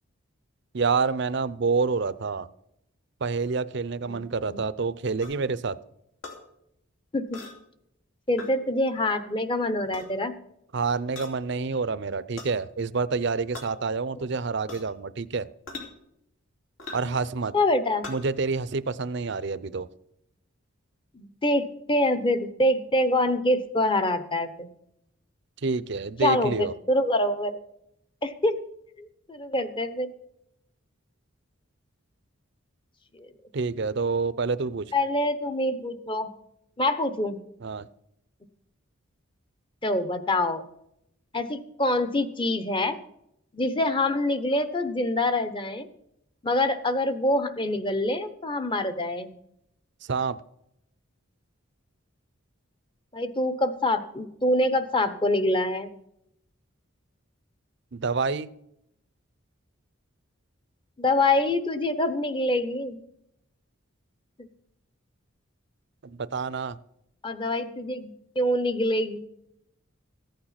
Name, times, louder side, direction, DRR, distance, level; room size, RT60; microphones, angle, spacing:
voice 1, 0.7-2.5 3.2-5.8 10.7-15.5 16.9-17.5 18.1-19.9 25.6-26.7 33.5-34.9 37.6-37.9 50.0-50.4 57.9-58.5 66.0-66.8, right 4 dB, 55° right, 16 dB, 0.6 m, -28 dB
sound 1, 5.2-5.4 6.2-6.4 7.3-7.6 8.4-8.5 9.8-10.1 11.2-11.4 12.4-12.5 13.5-13.7 14.7-14.9 15.7-15.9 16.8-17.1 18.0-18.2, left 3 dB, 70° left, 2.7 m, -40 dB
voice 2, 8.3-10.4 17.5-18.1 21.1-24.7 26.2-27.6 28.2-28.6 29.0-30.1 33.1-33.3 34.9-36.3 36.8-37.4 39.8-40.7 41.3-43.0 43.5-45.9 46.4-49.3 53.1-55.9 61.0-63.0 64.4-64.5 67.2-69.2, left 1 dB, 25° left, 11 dB, 0.9 m, -25 dB
14.5 x 8.8 x 5.8 m, 0.77 s
head